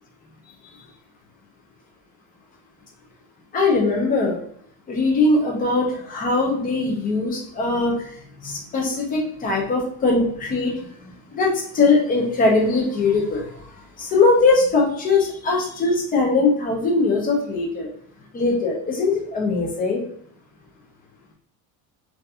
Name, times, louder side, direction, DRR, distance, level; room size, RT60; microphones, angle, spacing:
voice 1, 3.5-4.4 4.9-8.1 8.4-10.7 11.3-13.5 14.0-17.9 18.3-20.0, left 3 dB, 20° left, -1 dB, 0.4 m, -20 dB
2.7 x 2.3 x 2.3 m, 0.63 s
cardioid pair, 175°, 40 cm